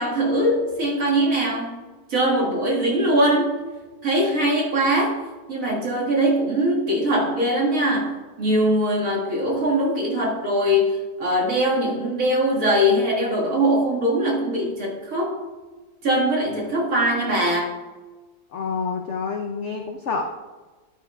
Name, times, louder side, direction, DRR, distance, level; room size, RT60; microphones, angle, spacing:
voice 1, 0.0-1.8 2.1-3.6 4.0-15.4 16.0-17.8, equal, 50° right, -4 dB, 2.0 m, -22 dB
voice 2, 18.5-20.2, left 5 dB, 70° left, 3 dB, 0.7 m, -28 dB
11.0 x 9.2 x 2.3 m, 1.3 s
omnidirectional pair, 1.9 m